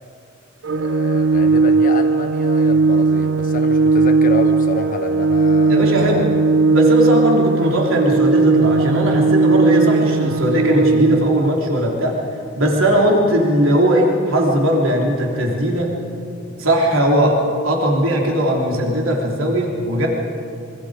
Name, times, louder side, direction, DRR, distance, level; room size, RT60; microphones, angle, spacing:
Organ, 0.6-11.6, right 3 dB, 60° right, 0.4 m, -17 dB
voice 1, 0.7-6.3 16.5-16.6, left 2 dB, 40° left, 4 dB, 1.3 m, -29 dB
voice 2, 5.7-6.3 6.7-12.2 12.6-16.0 16.6-20.1, equal, 85° right, -1 dB, 3.4 m, -18 dB
25.5 x 25.0 x 5.0 m, 2.7 s
head